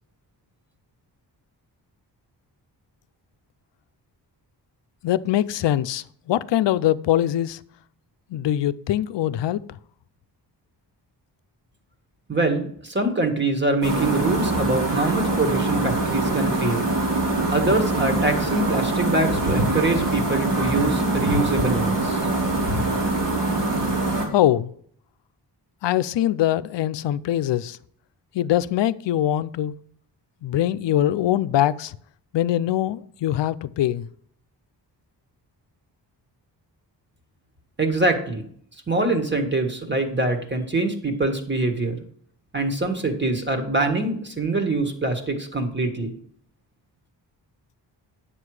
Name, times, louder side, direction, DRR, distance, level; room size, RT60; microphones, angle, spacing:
voice 1, 5.0-7.6 8.3-9.6 24.3-24.7 25.8-27.8 28.3-29.7 30.4-32.0 32.3-34.1, left 12 dB, 80° left, 0.5 m, -22 dB
voice 2, 12.3-16.8 17.5-22.2 37.8-38.4 38.9-42.0 42.5-46.1, right 2 dB, 25° right, 1.7 m, -24 dB
sound 1, 13.8-24.3, right 2 dB, 75° right, 3.7 m, -23 dB
9.8 x 7.6 x 4.9 m
cardioid pair, 90°, 42 cm